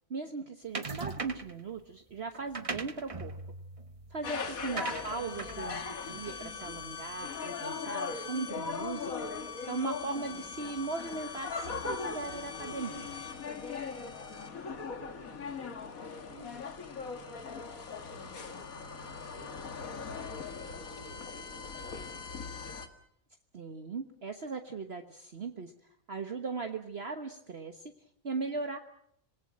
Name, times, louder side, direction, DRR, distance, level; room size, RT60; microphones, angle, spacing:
voice 1, 0.1-3.4 4.1-9.3 9.7-13.1 23.5-25.7 26.1-27.8 28.2-28.8, right 4 dB, 50° right, 6 dB, 1.5 m, -38 dB
sound 1, 0.7-1.6 2.3-7.0, right 3 dB, 25° right, 1.0 m, -40 dB
sound 2, 4.2-22.9, left 5 dB, 80° left, 2.2 m, -39 dB
voice 2, 4.8-5.1 14.3-15.8 16.3-22.8, equal, 10° left, 4 dB, 4.9 m, -56 dB
27.0 x 19.0 x 7.6 m, 0.69 s
omnidirectional pair, 1.5 m